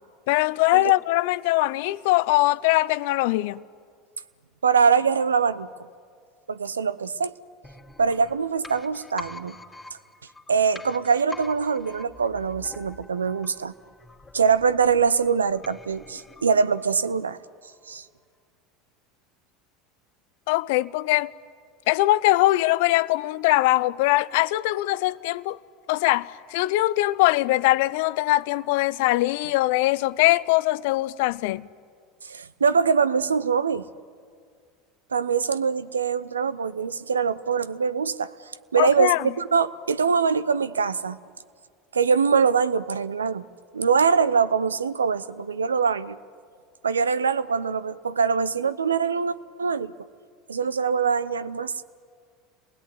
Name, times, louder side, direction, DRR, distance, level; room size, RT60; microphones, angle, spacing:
voice 1, 0.3-3.6 20.5-21.3 21.9-25.6 25.9-31.7 38.8-39.2, left 18 dB, 65° left, 0.6 m, -22 dB
voice 2, 4.6-5.7 6.5-7.3 8.0-9.6 10.5-13.7 14.3-17.4 17.9-18.0 32.2-33.8 35.1-38.3 38.7-41.2 41.9-43.4 43.7-46.2 46.8-49.9 50.5-51.8, right 6 dB, 90° right, 0.8 m, -23 dB
sound 1, 7.6-17.3 17.6-17.7, left 2 dB, 15° left, 2.6 m, -45 dB
29.5 x 20.5 x 9.7 m
hypercardioid pair, 80°, 0 cm